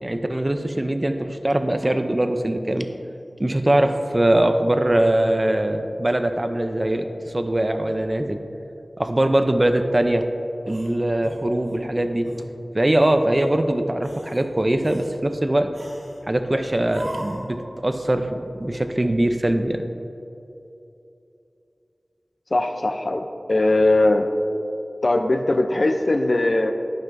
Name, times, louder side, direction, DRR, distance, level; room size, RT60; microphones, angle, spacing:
voice 1, 0.0-2.9 3.4-8.4 9.0-10.3 10.7-12.3 12.7-15.7 16.3-19.8, right 1 dB, 30° right, 7 dB, 0.5 m, -22 dB
sound 1, 10.6-11.8 12.2-12.5 13.0-13.5 13.9-14.4 14.8-15.2 15.7-16.2 16.9-17.5, right 1 dB, 90° right, 1.6 m, -40 dB
voice 2, 22.5-24.3 25.0-26.7, left 2 dB, 55° left, 6 dB, 0.5 m, -20 dB
12.0 x 5.7 x 2.6 m, 2.8 s
wide cardioid pair, 65°, 0 cm